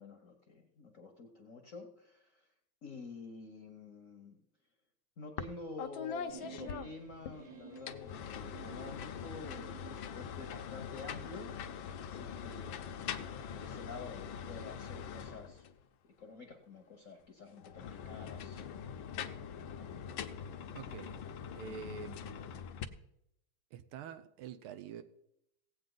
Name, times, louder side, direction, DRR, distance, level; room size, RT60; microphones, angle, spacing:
voice 1, 0.0-2.5 2.8-4.4 5.2-11.5 12.0-15.7 16.2-18.7, left 3 dB, 50° left, 4 dB, 1.1 m, -49 dB
sound 1, 5.4-5.5 5.8-7.4 7.8-15.8 17.6-22.8, left 7 dB, 75° left, 1.4 m, -43 dB
sound 2, 6.3-10.0, right 5 dB, 50° right, 1.3 m, -52 dB
voice 2, 20.7-21.2 21.5-22.4 23.7-25.0, right 7 dB, 80° right, 9 dB, 1.6 m, -46 dB
17.0 x 8.6 x 3.9 m, 0.77 s
omnidirectional pair, 2.4 m